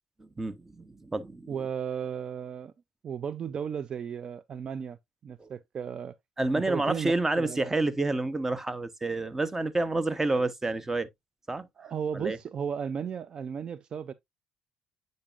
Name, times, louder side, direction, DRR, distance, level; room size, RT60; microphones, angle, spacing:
voice 1, 0.2-1.5 5.4-5.5 6.4-11.1 11.5-11.7 12.1-12.4, right 2 dB, 15° right, 0.9 m, -29 dB
voice 2, 1.5-2.7 3.0-6.2 6.5-7.7 11.8-14.1, right 7 dB, 45° right, 0.4 m, -35 dB
8.7 x 5.3 x 2.5 m
supercardioid pair, 75°, 2 cm